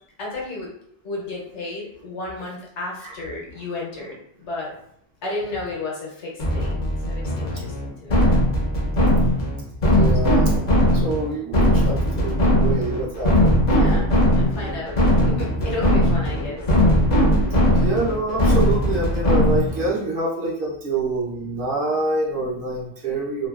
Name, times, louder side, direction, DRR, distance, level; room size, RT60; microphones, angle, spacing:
voice 1, 0.2-0.7 1.0-4.7 5.2-6.8 7.1-8.4 13.7-15.0 15.3-16.6 17.8-17.9, left 2 dB, 75° left, -3 dB, 1.2 m, -33 dB
sound 1, 6.4-19.9, equal, 45° left, 0.7 m, -19 dB
voice 2, 9.8-13.9 17.8-23.5, right 2 dB, 50° right, -4 dB, 0.9 m, -26 dB
2.9 x 2.4 x 2.3 m, 0.71 s
omnidirectional pair, 1.2 m